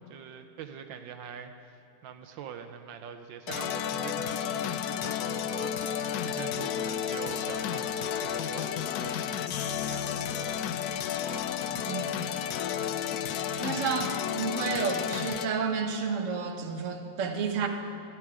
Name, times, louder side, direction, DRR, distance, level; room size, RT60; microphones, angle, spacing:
voice 1, 0.0-10.8 13.6-13.9, right 8 dB, 80° right, 8 dB, 1.3 m, -44 dB
sound 1, 3.5-15.5, left 9 dB, 75° left, 0.8 m, -32 dB
voice 2, 11.8-12.1 13.6-17.7, right 5 dB, 50° right, 4 dB, 1.1 m, -31 dB
15.0 x 11.0 x 4.8 m, 2.4 s
omnidirectional pair, 2.1 m